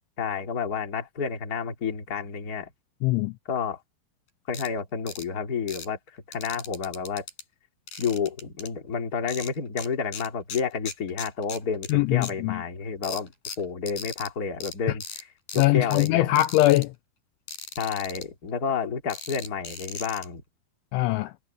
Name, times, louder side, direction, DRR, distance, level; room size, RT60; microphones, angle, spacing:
voice 1, 0.2-2.7 3.4-3.8 4.5-7.2 8.0-13.3 13.6-16.4 17.8-20.4, left 6 dB, 25° left, 2.1 m, -30 dB
voice 2, 3.0-3.3 11.9-12.6 15.6-16.9 20.9-21.3, left 17 dB, 80° left, 2.9 m, -22 dB
sound 1, 4.5-4.7 5.1-5.3 5.7-5.9 6.3-7.4 7.9-8.7 9.3-9.9 10.1-11.9 12.2-12.3 13.0-14.3 14.6-14.7 15.0-15.2 15.5-16.1 16.4-16.9 17.5-18.2 19.1-20.3, left 6 dB, 45° left, 6.2 m, -38 dB
omnidirectional pair, 5.8 m